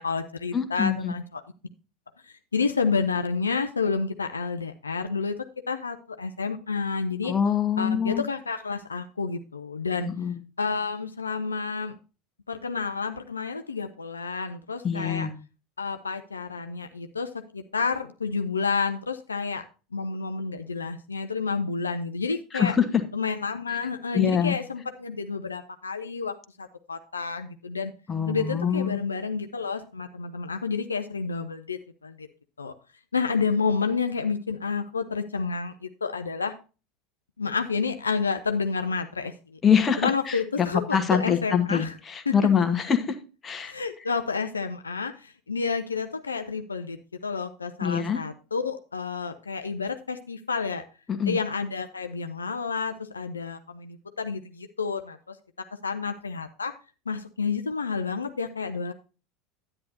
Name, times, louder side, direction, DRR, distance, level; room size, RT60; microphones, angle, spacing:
voice 1, 0.0-1.4 2.2-7.3 7.8-10.1 10.6-11.9 12.5-15.3 15.8-19.6 19.9-22.8 23.1-27.9 28.3-32.3 32.6-32.7 33.1-36.5 37.4-39.6 40.0-41.9 42.3-42.4 43.6-47.0 47.2-50.8 51.3-55.4 55.8-56.7 57.1-58.9, left 5 dB, 80° left, 8 dB, 0.5 m, -30 dB
voice 2, 0.5-1.1 7.2-8.2 10.0-10.3 14.8-15.3 22.5-23.0 24.1-24.5 28.1-29.0 39.6-43.2 43.4-43.7 47.8-48.2 51.1-51.4, left 7 dB, 25° left, 8 dB, 1.3 m, -24 dB
10.5 x 9.7 x 2.7 m, 0.32 s
figure-of-eight pair, 75°, 0 cm